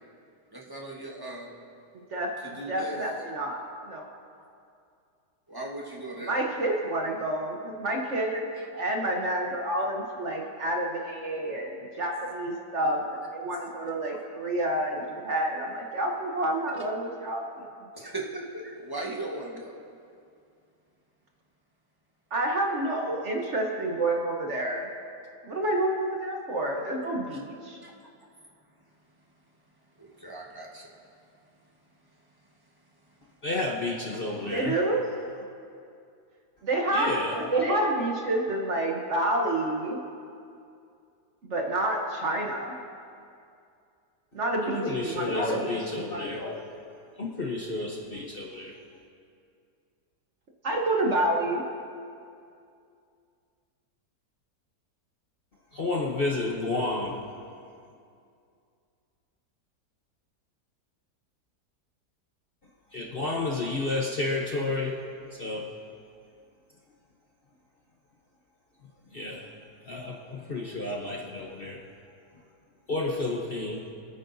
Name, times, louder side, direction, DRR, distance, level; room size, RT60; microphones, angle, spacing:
voice 1, 0.5-1.5 2.4-3.0 5.5-6.4 12.1-12.3 13.5-13.7 17.9-19.8 27.3-27.4 27.8-27.9 30.0-30.9 34.4-34.6, right 2 dB, 15° right, -2 dB, 1.2 m, -38 dB
voice 2, 2.7-4.1 6.2-8.5 8.7-13.0 13.3-17.4 22.3-24.9 25.4-27.8 34.4-35.1 36.6-40.0 41.4-42.7 44.3-45.6 50.6-51.6, right 1 dB, 50° right, 1 dB, 1.2 m, -28 dB
voice 3, 33.4-34.7 36.9-37.3 37.6-37.9 44.6-46.8 47.2-48.7 55.7-57.2 62.9-64.9 65.4-65.7 69.1-69.5 69.8-71.9 72.9-73.9, left 2 dB, 40° left, -2 dB, 0.9 m, -31 dB
23.5 x 9.3 x 2.7 m, 2.4 s
omnidirectional pair, 1.8 m